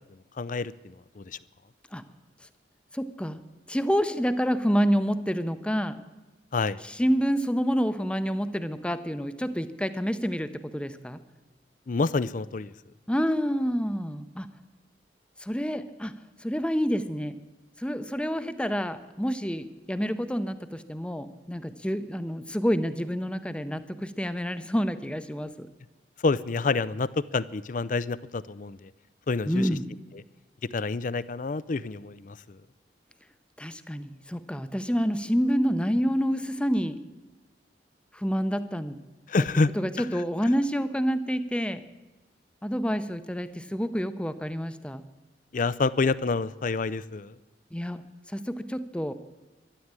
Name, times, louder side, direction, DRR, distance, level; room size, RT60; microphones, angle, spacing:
voice 1, 0.4-1.4 6.5-6.8 11.9-12.7 26.2-28.9 29.3-29.7 30.7-32.6 39.3-39.7 40.0-40.1 45.5-47.3, left 3 dB, 50° left, 18 dB, 0.5 m, -28 dB
voice 2, 2.9-3.4 3.7-6.0 6.8-11.2 13.1-14.5 15.4-16.1 16.4-17.4 17.8-25.7 29.5-29.9 33.6-37.0 38.1-39.0 39.7-41.8 42.6-45.0 47.7-48.0 48.3-49.1, equal, 5° left, 11 dB, 0.7 m, -28 dB
13.0 x 11.0 x 8.9 m, 1.2 s
head